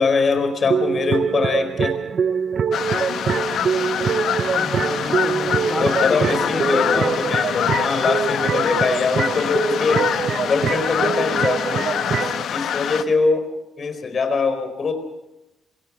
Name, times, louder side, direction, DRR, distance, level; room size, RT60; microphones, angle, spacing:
voice 1, 0.0-2.0 5.8-10.1 10.4-11.9 12.1-13.5 13.8-14.9, left 4 dB, 45° left, 8 dB, 4.5 m, -22 dB
sound 1, 0.7-12.4, right 7 dB, 50° right, 0.8 m, -24 dB
sound 2, 2.7-13.0, left 9 dB, 70° left, 1.1 m, -25 dB
voice 2, 4.5-7.4, left 2 dB, 20° left, 7 dB, 4.4 m, -30 dB
25.5 x 17.5 x 6.3 m, 0.97 s
cardioid pair, 90°, 0 cm